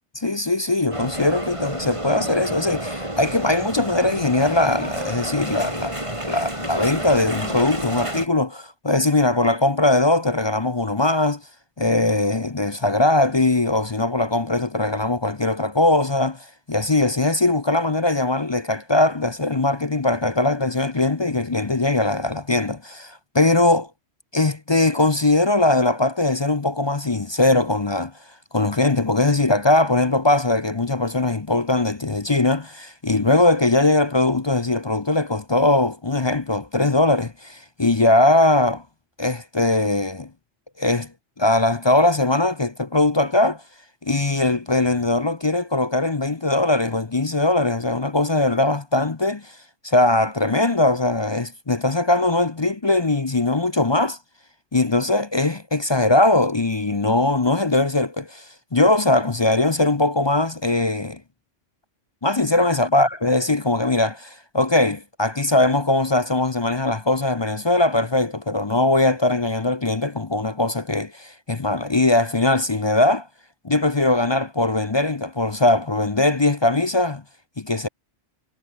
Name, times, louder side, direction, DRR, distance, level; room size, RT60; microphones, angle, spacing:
voice 1, 0.1-5.9 6.2-11.4 11.8-16.4 16.7-23.9 24.3-28.1 28.5-38.8 39.2-40.3 40.8-41.1 41.4-43.6 44.0-49.5 49.8-54.2 54.7-58.4 58.7-61.2 62.2-73.3 73.6-77.2 77.6-77.9, left 2 dB, 25° left, 0.6 m, -20 dB
sound 1, 0.9-8.3, right 1 dB, 25° right, 5.5 m, -30 dB
omnidirectional pair, 1.3 m